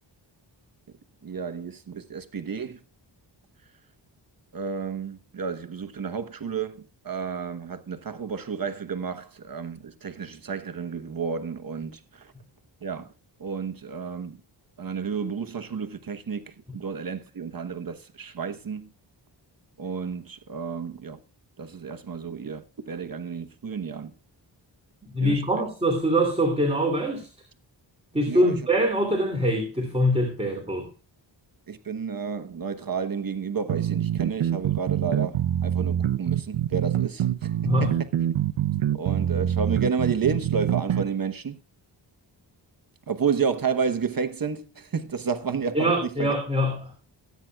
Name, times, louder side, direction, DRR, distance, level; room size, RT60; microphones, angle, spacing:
voice 1, 1.2-2.8 4.5-12.3 12.8-13.1 13.4-14.4 14.8-18.9 19.8-21.2 21.6-24.1 25.2-25.4 28.3-28.6 31.7-38.1 38.9-41.6 43.1-46.3, right 6 dB, 50° right, 1.1 m, -31 dB
voice 2, 25.1-27.3 28.1-30.9 37.6-38.0 45.7-46.9, equal, 15° right, 2.8 m, -24 dB
sound 1, 33.7-41.1, right 11 dB, 85° right, 0.8 m, -25 dB
18.0 x 9.4 x 2.3 m
wide cardioid pair, 95°, 45 cm